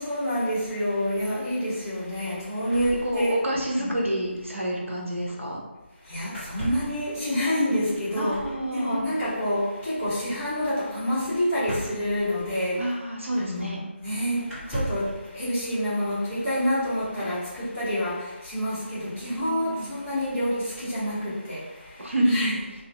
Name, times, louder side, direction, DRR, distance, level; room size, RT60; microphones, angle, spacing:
voice 1, 0.0-3.4 3.8-3.9 6.0-8.4 8.7-12.9 13.3-22.5, equal, 10° left, -15 dB, 1.1 m, -28 dB
sound 1, 2.7-3.7 4.0-4.5 6.3-7.0 8.3-8.6 11.6-12.8 13.6-13.7 14.4-15.1, equal, 5° right, 0.6 m, -36 dB
voice 2, 3.0-5.6 8.2-9.1 12.7-13.8 19.3-20.0 22.0-22.6, right 1 dB, 80° right, -2 dB, 0.8 m, -28 dB
2.6 x 2.3 x 3.2 m, 1.1 s
figure-of-eight pair, 160°, 7 cm